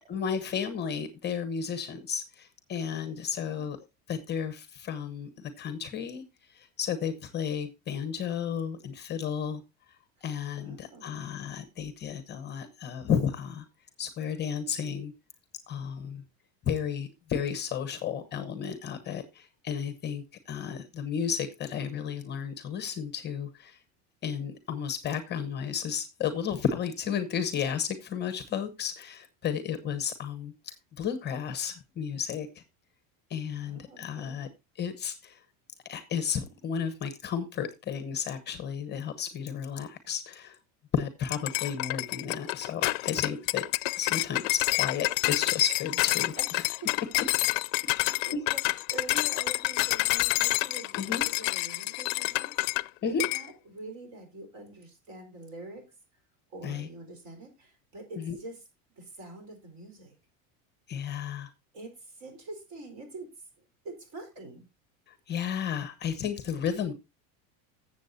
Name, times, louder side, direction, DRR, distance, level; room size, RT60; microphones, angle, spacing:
voice 1, 0.1-3.8 4.1-5.3 5.6-6.2 6.5-9.6 10.2-13.6 14.0-15.1 15.7-16.2 16.6-23.8 24.2-32.5 33.3-34.5 34.8-35.4 35.9-40.6 40.9-43.6 44.0-46.6 48.3-48.4 51.0-51.2 53.0-53.2 56.6-56.9 58.2-58.4 60.9-61.5 65.3-66.9, left 7 dB, 25° left, 1.0 m, -33 dB
voice 2, 3.4-3.7 10.6-11.3 33.6-34.4 46.4-46.5 46.8-47.1 47.8-55.8 56.5-58.6 59.0-60.2 61.7-63.3 63.8-64.7, right 2 dB, 45° right, 4.3 m, -45 dB
sound 1, 41.3-52.9 53.2-53.5, left 23 dB, 70° left, 0.5 m, -28 dB
14.5 x 7.5 x 2.7 m
cardioid pair, 160°, 40 cm